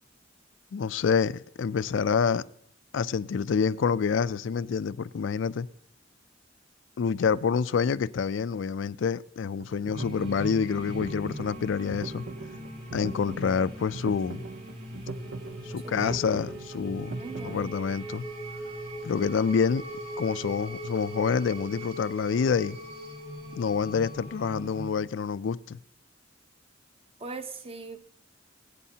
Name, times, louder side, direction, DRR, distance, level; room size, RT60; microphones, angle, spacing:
voice 1, 0.7-2.4 2.9-5.7 7.0-12.2 12.9-14.5 15.6-17.1 17.4-18.2 19.0-19.8 20.2-22.8 23.6-25.8, left 6 dB, 80° left, 0.4 m, -27 dB
sound 1, 9.6-17.7, right 3 dB, 85° right, 0.6 m, -40 dB
sound 2, 9.9-24.9, right 1 dB, 55° right, 4.4 m, -40 dB
voice 2, 15.8-16.2 17.2-17.7 27.2-28.0, right 3 dB, 30° right, 0.7 m, -40 dB
24.0 x 8.4 x 2.8 m
head